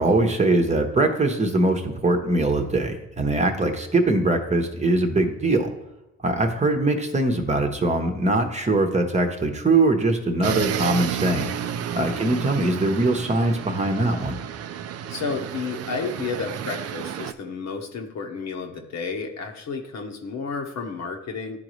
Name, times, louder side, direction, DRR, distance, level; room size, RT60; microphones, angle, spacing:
voice 1, 0.0-5.7 6.2-11.5 11.9-14.3, right 2 dB, 25° right, 4 dB, 1.0 m, -22 dB
sound 1, 10.4-17.3, right 9 dB, 55° right, 0.5 m, -31 dB
voice 2, 15.1-21.6, left 5 dB, 60° left, 3 dB, 1.1 m, -31 dB
11.5 x 3.9 x 3.1 m, 0.94 s
cardioid pair, 90°, 30 cm